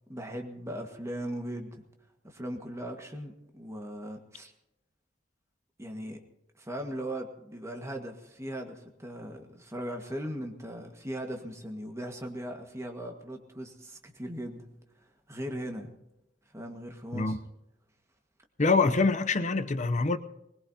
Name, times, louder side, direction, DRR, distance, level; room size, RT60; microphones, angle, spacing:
voice 1, 0.1-1.8 2.2-4.5 5.8-6.2 6.6-14.7 15.0-15.9 16.5-17.4 18.8-18.9, equal, 15° right, 1.7 m, -39 dB
voice 2, 18.6-20.2, left 3 dB, 40° left, 0.7 m, -25 dB
21.0 x 20.5 x 2.9 m
head